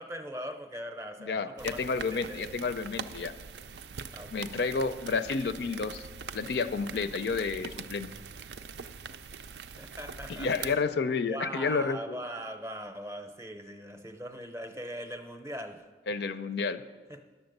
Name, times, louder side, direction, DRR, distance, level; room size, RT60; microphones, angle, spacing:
voice 1, 0.0-2.5 4.1-4.5 9.8-10.8 11.2-15.8 17.1-17.2, equal, 15° right, 7 dB, 0.6 m, -41 dB
voice 2, 1.2-3.3 4.3-6.1 6.3-8.1 10.3-12.2 16.1-16.8, left 4 dB, 65° left, 12 dB, 0.4 m, -30 dB
sound 1, 1.6-10.8, right 6 dB, 70° right, 0.4 m, -43 dB
10.5 x 7.1 x 6.6 m, 1.4 s
head